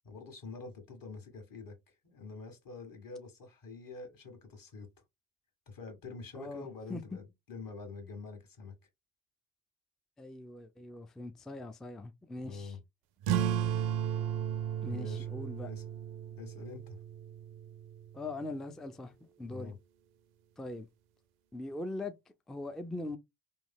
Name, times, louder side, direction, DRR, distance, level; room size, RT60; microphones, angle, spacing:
voice 1, 0.0-1.7 2.0-4.9 5.7-8.7 12.4-12.8 14.9-15.3 15.6-15.9 16.4-17.0 19.5-19.8, left 3 dB, 50° left, 1.6 m, -46 dB
voice 2, 6.3-7.2 10.2-12.8 14.8-15.7 18.1-19.1 19.4-19.7 20.6-20.9 21.5-22.1 22.5-23.2, left 2 dB, ahead, 0.4 m, -41 dB
sound 1, 13.2-18.3, right 10 dB, 60° right, 0.5 m, -34 dB
3.1 x 2.7 x 2.2 m
hypercardioid pair, 50°, 43 cm